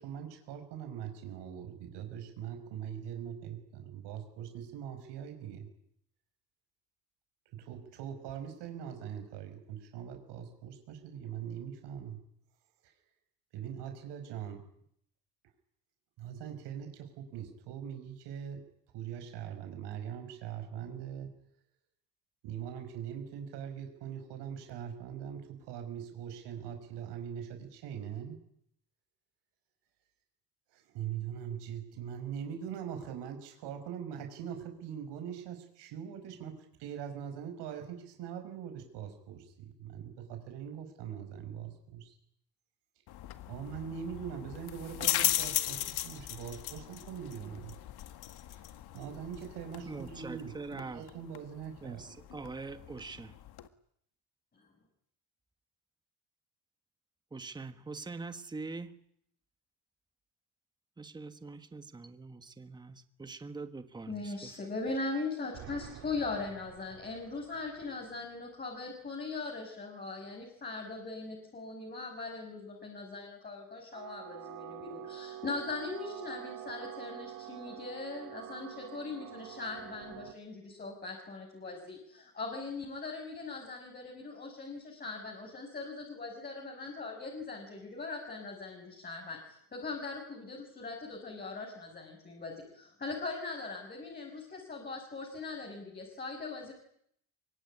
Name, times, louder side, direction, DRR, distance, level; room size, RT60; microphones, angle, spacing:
voice 1, 0.0-5.7 7.5-12.2 12.8-12.9 13.5-14.6 16.2-18.7 18.9-21.4 22.4-28.4 30.7-36.5 36.8-42.1 43.5-47.8 48.5-48.6 48.9-52.1, right 9 dB, 85° right, 5 dB, 5.5 m, -42 dB
sound 1, 43.1-53.7, left 13 dB, 70° left, 1.9 m, -37 dB
voice 2, 49.8-51.1 51.8-53.4 57.3-59.0 61.0-64.6, right 3 dB, 10° right, 9 dB, 1.3 m, -43 dB
voice 3, 64.1-96.7, left 3 dB, 25° left, 0 dB, 6.2 m, -40 dB
sound 2, 65.5-68.4 73.9-80.3, right 12 dB, 55° right, 1.7 m, -47 dB
25.0 x 23.5 x 9.9 m, 0.70 s
cardioid pair, 165°, 40 cm